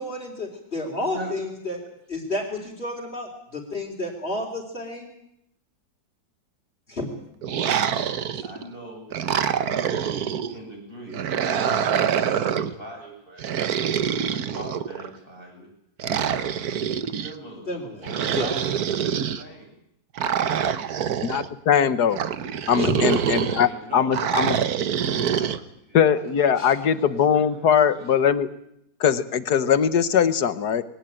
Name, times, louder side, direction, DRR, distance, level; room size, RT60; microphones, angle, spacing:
voice 1, 0.0-1.8 2.1-5.1 6.9-7.1 17.7-18.5 22.8-22.9 26.6-26.7, left 1 dB, 30° left, -3 dB, 4.0 m, -31 dB
voice 2, 0.8-1.3 7.5-7.8 8.4-9.0 9.6-13.7 14.1-15.7 16.2-16.8 17.1-17.8 18.0-19.7 20.4-20.7 22.7-26.2 26.5-28.1, right 1 dB, 30° right, 0 dB, 8.3 m, -41 dB
sound 1, 7.4-8.6 9.1-10.5 11.1-12.8 13.4-15.1 16.0-17.3 18.0-19.4 20.2-21.5 22.1-23.7 24.1-25.6, right 8 dB, 60° right, 1.5 m, -25 dB
voice 3, 21.2-22.2 22.7-23.7 23.9-24.6 25.9-28.5 29.0-30.8, left 8 dB, 60° left, 14 dB, 1.6 m, -21 dB
22.0 x 19.0 x 9.0 m, 0.77 s
omnidirectional pair, 2.0 m